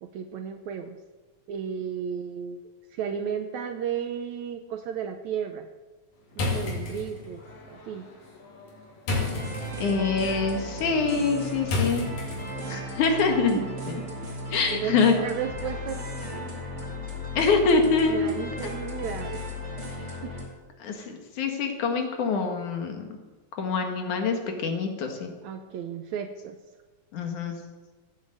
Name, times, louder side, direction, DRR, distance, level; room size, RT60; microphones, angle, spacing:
voice 1, 0.0-1.0 1.5-2.6 2.9-5.7 6.4-7.4 7.7-8.1 13.4-13.7 14.2-14.4 14.7-16.1 16.3-16.6 18.1-19.4 20.2-20.3 25.4-26.6, right 8 dB, 70° right, 7 dB, 1.9 m, -33 dB
sound 1, 6.3-12.8, left 3 dB, 85° left, 4.9 m, -33 dB
sound 2, 9.1-20.5, left 1 dB, 25° right, 2.3 m, -35 dB
voice 2, 9.8-12.1 12.7-13.6 13.9-14.0 14.5-15.1 17.4-18.4 20.8-23.1 23.6-25.3 27.1-27.6, left 4 dB, 65° left, 3 dB, 3.1 m, -25 dB
14.5 x 9.6 x 7.9 m, 1.3 s
omnidirectional pair, 3.9 m